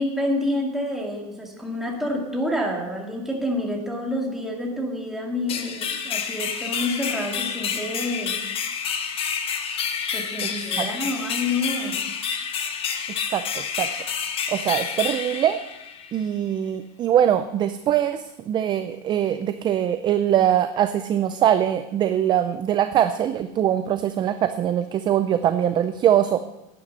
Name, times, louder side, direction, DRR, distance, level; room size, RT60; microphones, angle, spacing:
voice 1, 0.0-8.4 10.1-11.9, left 1 dB, ahead, -1 dB, 2.1 m, -28 dB
sound 1, 5.5-16.2, left 7 dB, 30° left, 1.1 m, -29 dB
voice 2, 13.3-13.9 14.5-15.6 16.1-26.4, right 10 dB, 25° right, 10 dB, 0.4 m, -22 dB
11.0 x 9.8 x 5.5 m, 0.96 s
supercardioid pair, 150°, 19 cm